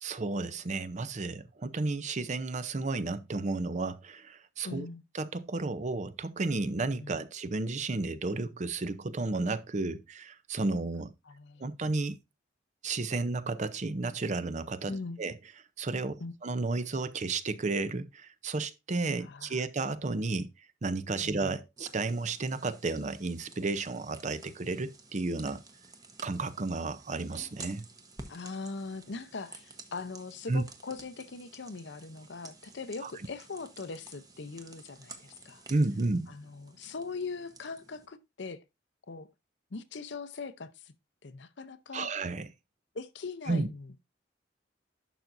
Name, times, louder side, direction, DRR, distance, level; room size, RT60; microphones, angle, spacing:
voice 1, 0.0-4.9 5.1-11.1 11.6-12.2 12.8-14.9 15.2-15.4 15.8-20.5 20.8-25.6 26.2-27.9 30.5-30.6 33.0-33.1 35.7-36.3 41.9-42.5 43.5-43.7, right 3 dB, 40° right, 0.6 m, -32 dB
voice 2, 4.6-5.0 7.0-7.2 11.3-11.7 14.9-15.2 16.2-16.3 19.2-19.7 21.2-21.5 28.3-35.6 36.3-38.6 39.1-39.3 39.7-40.9 41.2-42.1 42.9-44.0, left 4 dB, 70° left, 0.7 m, -41 dB
sound 1, 21.8-38.1, right 3 dB, 20° right, 1.0 m, -52 dB
11.0 x 5.9 x 2.6 m
head